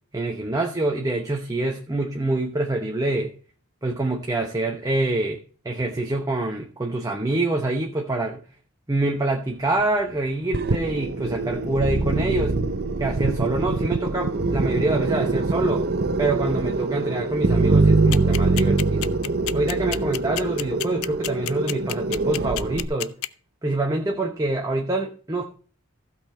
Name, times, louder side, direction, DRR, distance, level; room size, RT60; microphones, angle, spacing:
voice 1, 0.1-3.3 3.8-5.4 5.6-8.4 8.9-12.6 13.0-15.9 16.2-19.1 19.5-23.1 23.6-25.4, right 2 dB, 15° right, 1 dB, 1.0 m, -25 dB
sound 1, 10.5-22.8, right 3 dB, 45° right, 0.7 m, -23 dB
sound 2, 18.1-23.3, left 14 dB, 70° left, 0.5 m, -29 dB
15.5 x 5.7 x 4.3 m, 0.40 s
head